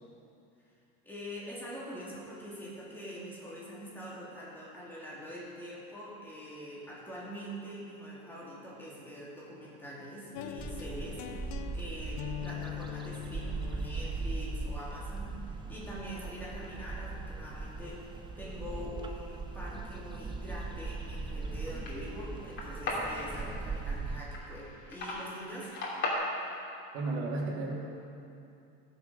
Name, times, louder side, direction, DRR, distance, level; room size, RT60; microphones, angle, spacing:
voice 1, 1.0-18.1 18.4-25.7, equal, 5° left, -8 dB, 3.3 m, -44 dB
sound 1, 10.3-16.4, left 10 dB, 65° left, 0.8 m, -43 dB
sound 2, 10.6-24.2, right 3 dB, 15° right, 0.6 m, -39 dB
sound 3, 21.0-26.1, left 2 dB, 35° left, 2.9 m, -39 dB
voice 2, 26.9-27.8, right 2 dB, 85° right, -2 dB, 2.5 m, -33 dB
17.5 x 6.9 x 5.2 m, 2.7 s
cardioid pair, 135°, 31 cm